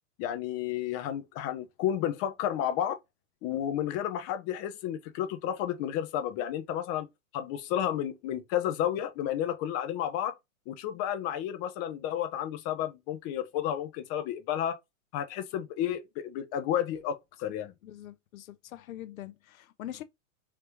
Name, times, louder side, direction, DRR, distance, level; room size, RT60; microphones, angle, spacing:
voice 1, 0.2-3.0 3.4-7.1 7.3-10.4 10.7-14.8 15.1-17.7, left 10 dB, 35° left, 0.8 m, -31 dB
voice 2, 17.8-20.0, left 12 dB, 75° left, 0.7 m, -43 dB
4.8 x 3.4 x 2.9 m
hypercardioid pair, 125°, 42 cm